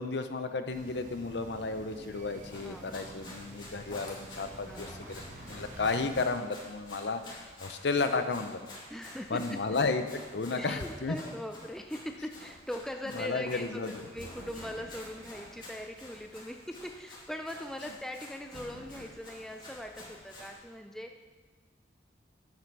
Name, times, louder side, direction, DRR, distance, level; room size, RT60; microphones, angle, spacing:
voice 1, 0.0-8.6 9.3-11.2 13.1-14.0, left 3 dB, 70° left, 8 dB, 0.7 m, -33 dB
sound 1, 0.7-6.2, right 1 dB, 45° right, 1.1 m, -48 dB
Run, 2.4-20.5, left 1 dB, 25° left, 2.3 m, -50 dB
voice 2, 2.6-3.1 4.6-5.1 8.9-9.4 10.5-21.1, left 1 dB, ahead, 4 dB, 0.5 m, -41 dB
sound 2, 14.2-17.0 18.5-19.0, right 1 dB, 80° right, 1.3 m, -50 dB
9.2 x 7.6 x 5.4 m, 1.3 s
head